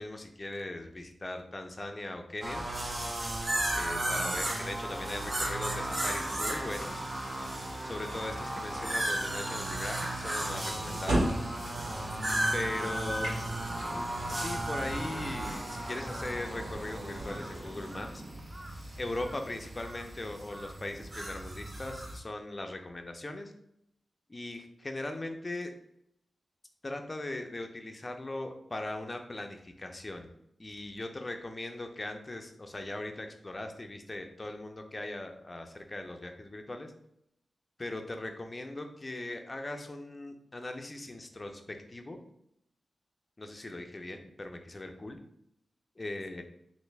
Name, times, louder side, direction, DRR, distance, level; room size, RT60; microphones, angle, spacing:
voice 1, 0.0-2.7 3.7-7.0 7.8-11.3 12.5-13.3 14.3-18.2 19.0-23.5 24.3-25.7 26.8-30.3 30.6-36.9 37.8-42.2 43.4-45.2 46.0-46.4, left 2 dB, 30° left, 5 dB, 0.5 m, -39 dB
sound 1, 2.4-22.2, right 1 dB, 30° right, 0.5 m, -35 dB
sound 2, 10.8-18.1, right 1 dB, 90° right, 1.4 m, -37 dB
3.3 x 2.6 x 3.2 m, 0.74 s
wide cardioid pair, 80°, 0 cm